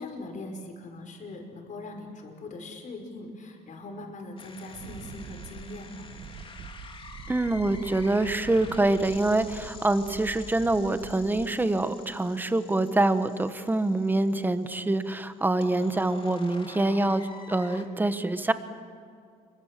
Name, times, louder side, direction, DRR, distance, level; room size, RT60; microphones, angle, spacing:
voice 1, 0.0-6.1, left 2 dB, 50° left, 3 dB, 5.5 m, -41 dB
sound 1, 4.4-17.8, left 4 dB, 30° left, 3.3 m, -48 dB
Wind, 4.7-11.9, right 6 dB, 65° right, 1.9 m, -45 dB
voice 2, 7.3-18.5, right 2 dB, 10° right, 11 dB, 1.4 m, -25 dB
27.0 x 23.5 x 7.7 m, 2.3 s
cardioid pair, 110°, 17 cm